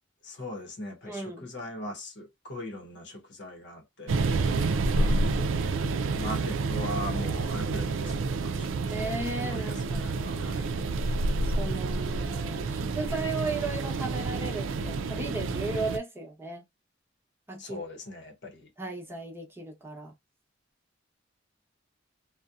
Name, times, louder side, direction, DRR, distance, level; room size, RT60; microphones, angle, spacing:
voice 1, 0.2-4.3 4.9-5.7 6.2-8.9 9.4-10.7 17.6-18.7, left 1 dB, 65° left, 0.8 m, -40 dB
voice 2, 1.0-1.5 8.9-10.1 11.6-16.6 17.5-17.8 18.8-20.1, right 2 dB, 10° right, 0.8 m, -35 dB
sound 1, 4.1-16.0, right 3 dB, 85° right, 0.4 m, -29 dB
2.6 x 2.1 x 2.3 m
head